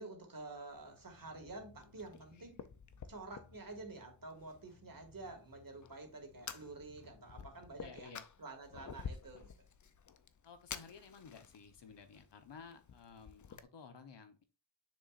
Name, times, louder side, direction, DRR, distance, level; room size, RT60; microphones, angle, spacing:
voice 1, 0.0-2.6 3.1-8.1 8.4-9.5, right 3 dB, 45° right, 2.2 m, -49 dB
Fire, 0.7-13.6, left 6 dB, 40° left, 0.6 m, -52 dB
sound 1, 0.9-7.9, left 4 dB, 80° left, 2.0 m, -65 dB
voice 2, 7.8-8.2 8.7-8.9 10.4-14.4, left 5 dB, 65° left, 1.1 m, -54 dB
7.1 x 6.0 x 2.5 m
wide cardioid pair, 90°, 45 cm